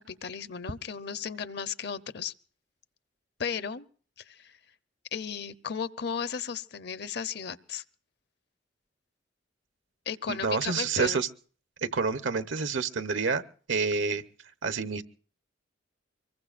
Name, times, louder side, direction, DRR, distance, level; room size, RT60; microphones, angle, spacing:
voice 1, 0.0-2.3 3.4-3.9 4.2-4.6 5.1-7.8 10.1-11.2, left 6 dB, 60° left, 14 dB, 0.7 m, -35 dB
voice 2, 10.3-11.3 11.8-13.4 13.7-14.2 14.6-15.0, right 4 dB, 80° right, 11 dB, 1.0 m, -28 dB
24.5 x 22.0 x 2.5 m, 0.42 s
head